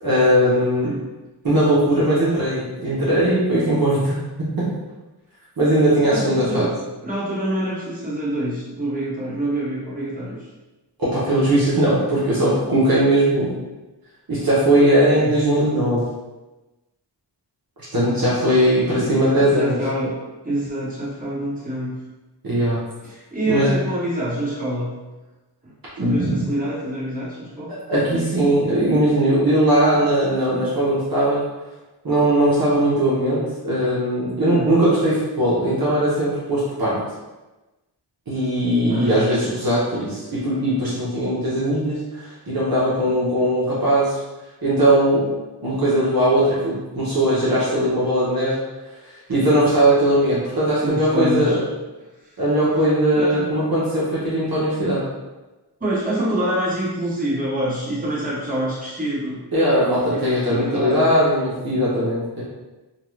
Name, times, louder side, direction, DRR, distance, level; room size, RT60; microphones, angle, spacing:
voice 1, 0.0-0.9 1.4-4.7 5.6-6.7 11.0-13.5 14.3-16.0 17.9-19.8 22.4-22.8 23.5-23.7 26.0-26.4 27.7-31.4 32.0-37.0 38.3-44.2 44.6-45.3 45.6-48.5 49.0-51.6 52.4-55.0 59.5-62.4, right 1 dB, 55° right, -9 dB, 0.8 m, -19 dB
voice 2, 6.1-6.7 7.0-10.5 14.6-15.4 18.8-20.1 20.4-21.9 23.0-24.9 25.6-25.7 26.0-27.7 34.4-34.7 38.8-39.2 50.8-51.6 52.2-52.4 53.1-53.5 55.8-59.4 60.0-61.1, right 1 dB, 20° right, -9 dB, 1.2 m, -26 dB
2.7 x 2.2 x 3.1 m, 1.1 s
wide cardioid pair, 90°, 42 cm